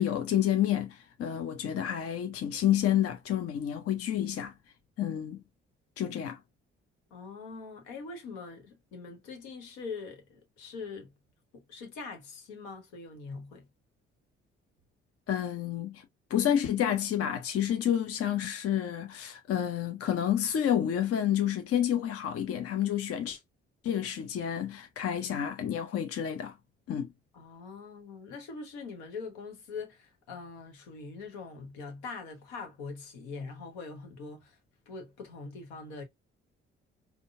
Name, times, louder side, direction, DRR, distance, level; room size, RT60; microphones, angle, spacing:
voice 1, 0.0-4.5 5.0-5.4 6.0-6.4 15.3-16.0 16.3-23.4 23.8-26.5 26.9-27.1, left 10 dB, 45° left, 0.8 m, -29 dB
voice 2, 7.1-11.1 11.5-13.7 27.3-34.6 34.9-36.0, left 4 dB, 70° left, 1.3 m, -43 dB
5.3 x 2.3 x 2.4 m
figure-of-eight pair, 45°, 33 cm